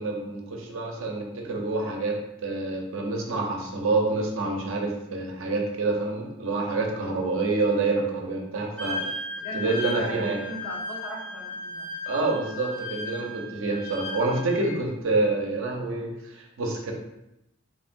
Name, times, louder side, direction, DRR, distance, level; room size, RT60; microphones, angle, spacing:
voice 1, 0.0-9.1 9.5-10.4 12.1-16.9, right 3 dB, 75° right, 1 dB, 0.5 m, -27 dB
Wind instrument woodwind instrument, 8.8-14.8, left 1 dB, 5° left, 0.6 m, -36 dB
voice 2, 9.4-12.4, equal, 70° left, -3 dB, 0.8 m, -38 dB
3.2 x 2.2 x 2.5 m, 0.86 s
head